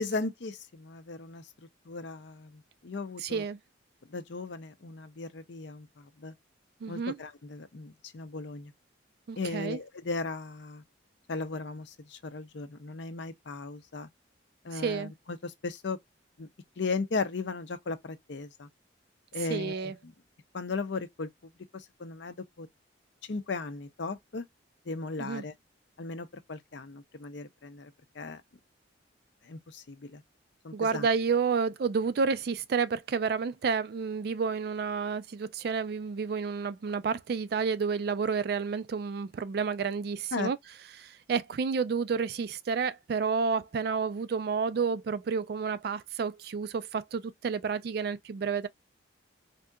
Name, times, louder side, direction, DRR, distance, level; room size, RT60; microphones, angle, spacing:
voice 1, 0.0-1.4 1.9-3.4 4.1-6.3 6.9-8.7 9.4-10.8 11.3-14.1 14.6-16.0 16.4-16.5 16.8-18.7 19.3-20.1 20.5-22.7 23.3-24.5 24.9-25.5 26.0-28.4 29.4-30.2 30.6-31.1 40.3-40.5, left 3 dB, 65° left, 0.6 m, -37 dB
voice 2, 3.2-3.6 6.8-7.2 9.3-9.8 14.7-15.1 19.5-20.0 25.2-25.4 30.7-40.6 41.0-48.7, right 5 dB, 50° right, 0.3 m, -30 dB
3.6 x 2.7 x 2.2 m
head